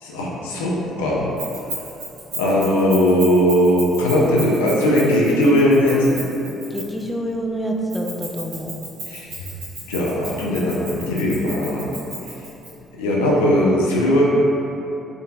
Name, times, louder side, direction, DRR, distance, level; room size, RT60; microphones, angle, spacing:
voice 1, 0.0-1.4 2.3-6.2 9.1-9.3 9.9-12.0 13.0-14.3, equal, 90° left, -4 dB, 0.4 m, -18 dB
Keys jangling, 1.4-7.1 7.9-12.7, right 3 dB, 80° right, 1.0 m, -34 dB
voice 2, 6.7-8.7, right 1 dB, 15° left, 1 dB, 0.4 m, -27 dB
3.6 x 2.6 x 2.2 m, 3.0 s
hypercardioid pair, 60°, 0 cm